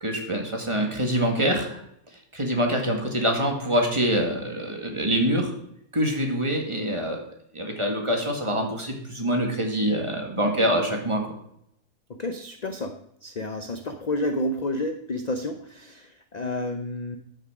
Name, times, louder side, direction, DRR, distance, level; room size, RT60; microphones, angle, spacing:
voice 1, 0.0-1.8 2.3-5.5 5.9-7.2 7.5-11.2, equal, 20° right, 2 dB, 1.7 m, -25 dB
voice 2, 12.1-12.9 13.2-17.2, left 1 dB, 50° left, 6 dB, 0.5 m, -30 dB
13.0 x 6.5 x 4.9 m, 0.75 s
omnidirectional pair, 1.7 m